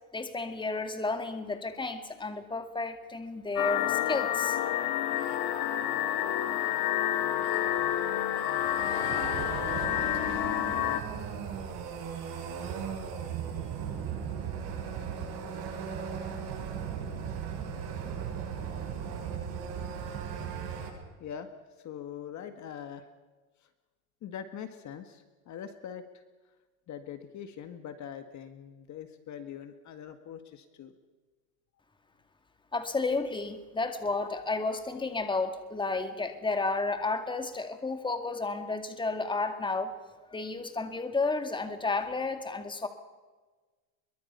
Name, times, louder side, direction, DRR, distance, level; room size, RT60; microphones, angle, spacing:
voice 1, 0.1-4.6 32.7-39.9 40.3-42.9, left 3 dB, 10° left, 7 dB, 2.3 m, -32 dB
sound 1, 3.6-11.0, left 12 dB, 60° left, 2.0 m, -29 dB
sound 2, 5.1-20.9, right 7 dB, 55° right, 7.6 m, -38 dB
voice 2, 21.8-23.1 23.6-23.7 24.2-26.1 26.9-30.9, left 8 dB, 40° left, 8 dB, 1.8 m, -42 dB
24.5 x 23.0 x 5.6 m, 1.3 s
supercardioid pair, 115°, 43 cm